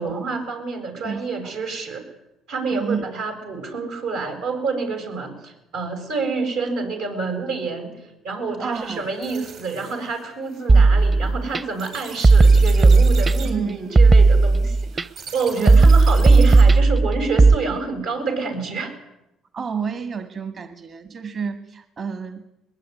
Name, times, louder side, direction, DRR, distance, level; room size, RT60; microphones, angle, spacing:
voice 1, 0.0-2.0 2.5-8.0 8.2-18.9, right 4 dB, 85° right, 5 dB, 7.7 m, -28 dB
voice 2, 1.0-1.5 2.7-3.1 8.6-9.1 13.4-14.0 15.6-15.8 19.5-22.5, right 6 dB, 50° right, 8 dB, 1.8 m, -30 dB
sound 1, 8.7-16.8, right 6 dB, 70° right, 7.4 m, -41 dB
sound 2, 10.7-11.6 12.2-13.6 14.0-15.0 15.7-17.6, right 3 dB, 30° right, 0.8 m, -14 dB
22.0 x 21.5 x 9.7 m, 0.89 s
cardioid pair, 90°, 0 cm